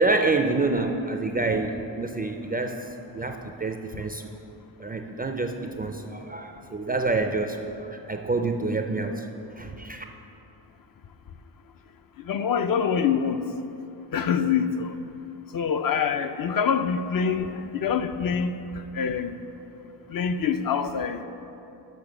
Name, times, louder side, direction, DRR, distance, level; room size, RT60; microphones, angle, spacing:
voice 1, 0.0-4.3 4.8-9.3 9.6-10.0, right 3 dB, 20° right, 5 dB, 0.3 m, -27 dB
voice 2, 12.3-13.4 14.1-15.0 15.5-18.5 18.9-19.3 20.1-21.2, left 7 dB, 50° left, 8 dB, 0.4 m, -25 dB
6.9 x 5.9 x 6.0 m, 2.8 s
cardioid pair, 100°, 46 cm